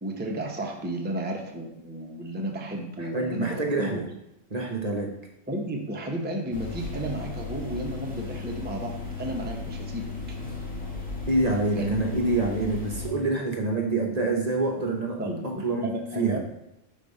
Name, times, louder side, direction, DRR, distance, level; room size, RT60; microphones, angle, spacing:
voice 1, 0.0-4.0 5.5-10.1 11.7-12.0 15.2-16.4, right 1 dB, 10° right, 1 dB, 0.7 m, -33 dB
voice 2, 3.0-4.0 4.5-5.1 11.3-15.9 16.1-16.4, right 2 dB, 40° right, 1 dB, 0.9 m, -26 dB
sound 1, 6.5-13.1, left 3 dB, 10° left, 1.6 m, -35 dB
5.2 x 4.2 x 5.3 m, 0.84 s
omnidirectional pair, 1.1 m